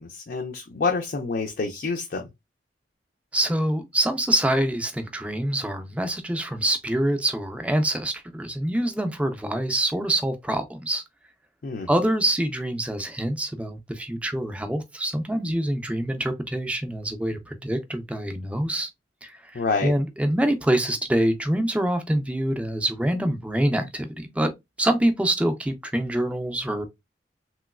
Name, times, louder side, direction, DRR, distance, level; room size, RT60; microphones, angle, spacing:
voice 1, 0.0-2.3 11.6-11.9 19.5-19.9, left 4 dB, 50° left, 0.4 m, -27 dB
voice 2, 3.3-11.0 11.9-18.9 19.2-24.5 24.8-26.8, right 1 dB, 5° right, 0.4 m, -25 dB
3.0 x 2.9 x 2.3 m
head